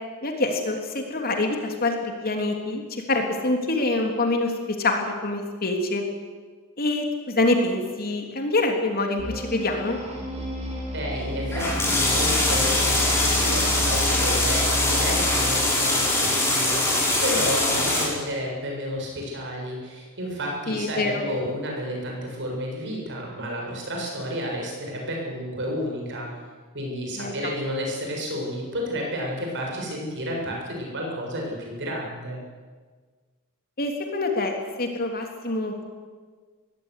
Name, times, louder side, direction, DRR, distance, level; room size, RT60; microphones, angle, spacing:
voice 1, 0.2-4.5 4.8-6.1 6.8-10.0 20.7-21.2 27.2-27.3 33.8-35.8, left 2 dB, 45° left, 3 dB, 3.3 m, -25 dB
sound 1, 9.2-15.7, left 1 dB, 30° right, 6.0 m, -31 dB
voice 2, 10.9-26.3 26.7-32.4, equal, 55° right, 0 dB, 7.3 m, -31 dB
sound 2, 11.5-18.0, left 2 dB, 10° left, 6.3 m, -22 dB
22.0 x 16.5 x 10.0 m, 1.5 s
head